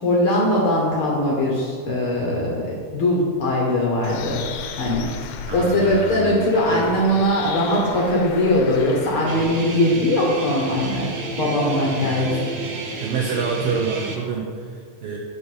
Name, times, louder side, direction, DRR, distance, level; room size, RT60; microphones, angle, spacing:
voice 1, 0.0-4.4 4.8-5.1 5.5-11.1 11.4-12.4, left 1 dB, 60° left, -3 dB, 1.5 m, -20 dB
Bird, 4.0-9.4, left 7 dB, 80° left, 2.0 m, -36 dB
voice 2, 5.4-6.9 12.0-12.4 13.0-15.2, right 5 dB, 85° right, 0 dB, 1.3 m, -28 dB
Guitar, 9.3-14.2, right 3 dB, 65° right, 2.4 m, -30 dB
9.6 x 5.0 x 5.5 m, 2.1 s
omnidirectional pair, 3.7 m